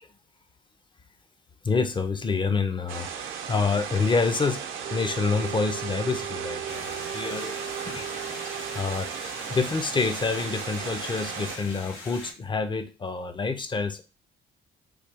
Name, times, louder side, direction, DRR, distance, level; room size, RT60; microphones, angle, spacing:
voice 1, 1.6-4.6 4.9-7.6 7.9-8.0 8.7-9.1 9.5-14.0, left 4 dB, 25° left, 7 dB, 0.5 m, -27 dB
sound 1, 2.9-11.6, right 7 dB, 85° right, 0.7 m, -36 dB
Wind instrument woodwind instrument, 4.8-9.4, right 10 dB, 35° right, 0.5 m, -38 dB
sound 2, 6.7-12.3, left 2 dB, 85° left, 1.0 m, -42 dB
3.2 x 2.4 x 3.4 m, 0.32 s
cardioid pair, 90°, 20 cm